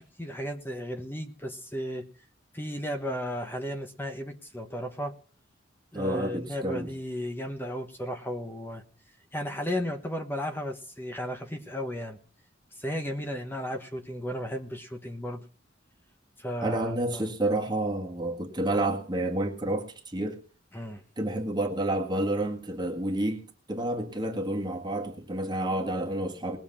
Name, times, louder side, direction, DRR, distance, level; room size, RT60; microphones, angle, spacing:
voice 1, 0.0-2.1 2.5-5.1 5.9-8.8 9.3-12.2 12.8-15.5 16.4-17.3 20.7-21.0, equal, 10° left, 1.2 m, -34 dB
voice 2, 5.9-6.9 16.6-20.4 21.2-26.6, right 1 dB, 25° right, 1.7 m, -29 dB
20.0 x 7.1 x 5.7 m
head